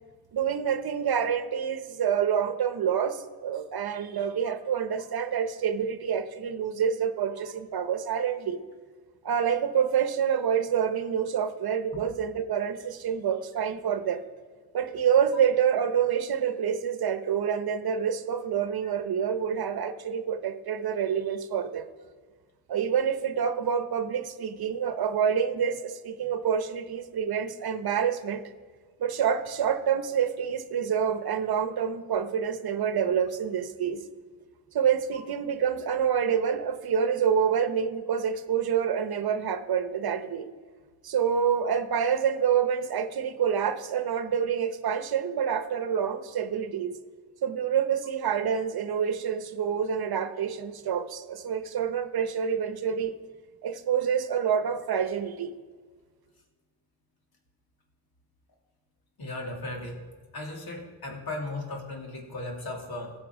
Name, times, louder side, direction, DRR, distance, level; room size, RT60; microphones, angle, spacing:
voice 1, 0.3-8.6 9.2-14.2 14.7-21.9 22.7-28.4 29.0-34.0 34.7-40.5 41.0-47.0 47.4-53.2 53.6-55.5, right 7 dB, 60° right, 9 dB, 1.0 m, -27 dB
voice 2, 59.2-60.0 60.3-63.1, left 2 dB, 60° left, 0 dB, 2.8 m, -36 dB
16.5 x 6.0 x 4.9 m, 1.5 s
cardioid pair, 85°, 43 cm